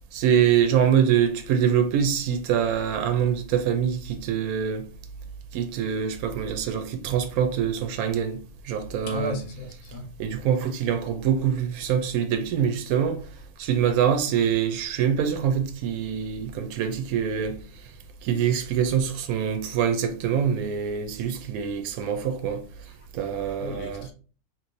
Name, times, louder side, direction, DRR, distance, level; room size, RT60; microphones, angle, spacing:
voice 1, 0.1-4.9 5.5-9.4 10.2-13.2 13.6-17.6 17.8-17.9 18.2-22.6 23.1-24.0, right 8 dB, 85° right, 1.0 m, -24 dB
voice 2, 9.0-10.1 23.4-24.1, left 2 dB, 75° left, 1.1 m, -35 dB
3.0 x 3.0 x 2.6 m
omnidirectional pair, 1.5 m